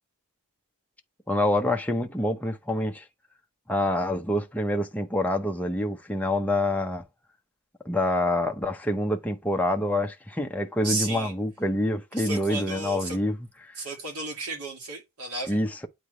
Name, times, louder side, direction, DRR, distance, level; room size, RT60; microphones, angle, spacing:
voice 1, 1.3-3.0 3.7-7.0 7.8-13.4 13.6-13.8 15.5-15.9, left 1 dB, 5° left, 0.6 m, -26 dB
voice 2, 10.8-11.3 12.1-13.2 13.8-15.6, right 2 dB, 80° right, 2.3 m, -33 dB
8.4 x 3.3 x 3.9 m
head